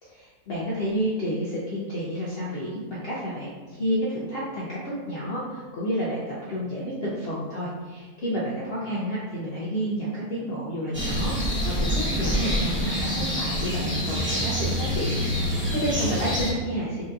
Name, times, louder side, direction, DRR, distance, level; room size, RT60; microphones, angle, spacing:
voice 1, 0.0-17.1, equal, 55° left, -7 dB, 0.7 m, -30 dB
sound 1, 10.9-16.5, equal, 15° right, 0.5 m, -26 dB
4.4 x 2.7 x 2.4 m, 1.4 s
omnidirectional pair, 1.7 m